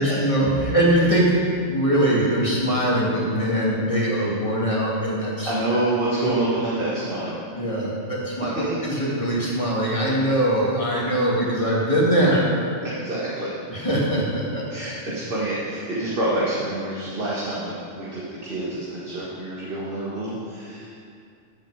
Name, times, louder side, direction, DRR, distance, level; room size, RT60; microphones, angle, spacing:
voice 1, 0.0-5.8 6.2-6.3 7.6-12.4 13.7-14.7, right 1 dB, 25° left, -5 dB, 2.3 m, -22 dB
voice 2, 5.4-7.4 8.7-8.8 12.2-12.3 12.8-13.5 14.7-20.9, right 1 dB, 50° right, -6 dB, 1.8 m, -27 dB
14.5 x 7.7 x 4.8 m, 2.3 s
omnidirectional pair, 1.2 m